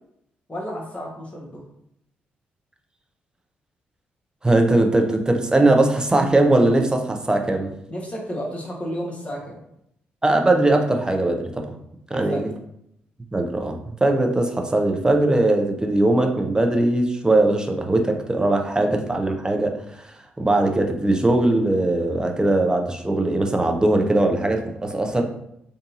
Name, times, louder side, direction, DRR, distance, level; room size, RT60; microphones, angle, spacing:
voice 1, 0.5-1.6 7.9-9.6 12.1-12.5, equal, 25° left, -2 dB, 1.3 m, -32 dB
voice 2, 4.4-7.7 10.2-11.7 12.1-12.5 13.3-20.1 20.4-25.2, right 2 dB, 15° right, 3 dB, 0.6 m, -20 dB
3.7 x 2.6 x 2.6 m, 0.76 s
hypercardioid pair, 40°, 5 cm